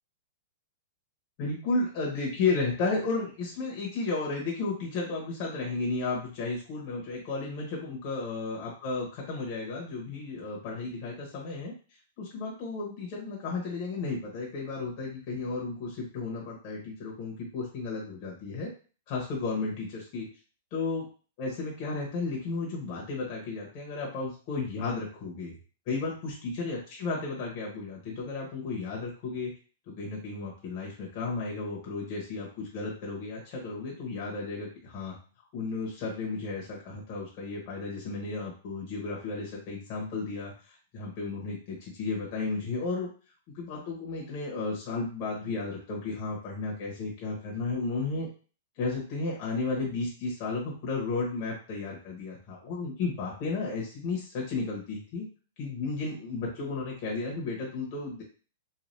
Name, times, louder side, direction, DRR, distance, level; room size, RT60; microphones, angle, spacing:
voice 1, 1.4-11.7 12.2-18.7 19.1-20.3 20.7-21.1 21.4-25.6 25.9-29.5 29.9-35.1 35.5-43.1 43.5-48.3 48.8-55.2 55.6-58.2, left 3 dB, 40° left, -3 dB, 1.0 m, -33 dB
3.2 x 2.5 x 2.6 m, 0.37 s
hypercardioid pair, 150°, 0 cm